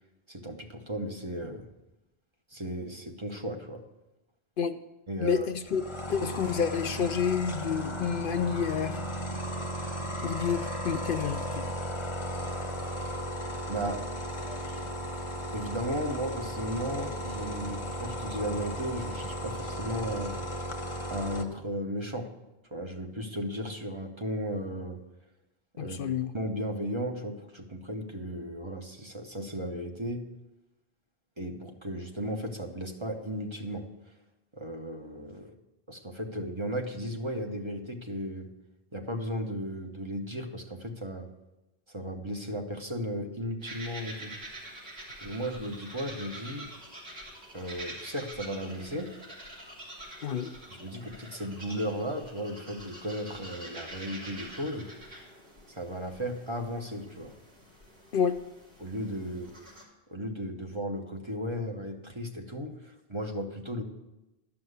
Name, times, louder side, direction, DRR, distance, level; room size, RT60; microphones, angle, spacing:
voice 1, 0.3-1.6 2.5-3.8 5.1-5.5 13.7-14.0 15.5-20.4 21.1-22.3 22.7-25.0 25.7-26.0 26.3-30.2 31.4-33.9 34.5-35.5 35.9-38.5 38.9-41.3 41.9-44.3 45.2-46.7 47.5-49.1 50.7-54.9 55.7-57.4 58.8-59.5 60.1-63.8, equal, 30° right, 2 dB, 1.1 m, -35 dB
voice 2, 5.2-5.8 6.1-9.0 10.2-11.6 25.8-26.3 50.2-50.5 58.1-58.4, left 7 dB, 65° left, 9 dB, 0.7 m, -29 dB
sound 1, 5.7-21.4, equal, 30° left, 1.0 m, -35 dB
sound 2, 43.6-59.8, right 1 dB, 70° right, 3.6 m, -46 dB
12.0 x 5.9 x 8.1 m, 0.99 s
omnidirectional pair, 1.0 m